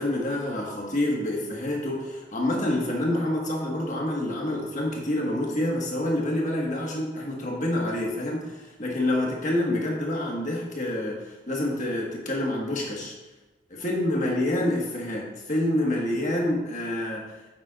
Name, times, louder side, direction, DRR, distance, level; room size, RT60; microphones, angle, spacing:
voice 1, 0.0-13.1 13.7-17.2, left 1 dB, 45° left, -2 dB, 1.6 m, -27 dB
9.7 x 7.4 x 2.5 m, 1.1 s
head